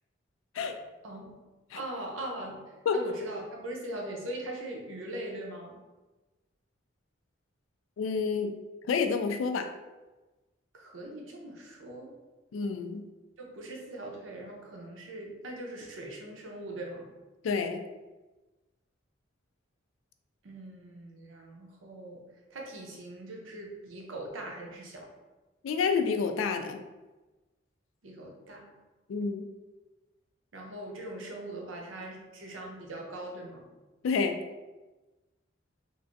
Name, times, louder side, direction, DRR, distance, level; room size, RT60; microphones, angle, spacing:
voice 1, 1.0-1.3 1.8-2.6 2.9-5.8 10.7-12.1 13.5-17.1 20.4-22.2 22.5-25.1 28.0-28.7 30.5-33.7, right 1 dB, 90° right, 0 dB, 0.7 m, -41 dB
voice 2, 8.0-8.6 8.9-9.7 12.5-13.1 17.4-17.8 25.6-26.8 29.1-29.4 34.0-34.4, left 5 dB, 90° left, 7 dB, 0.3 m, -29 dB
3.2 x 2.5 x 2.5 m, 1.1 s
head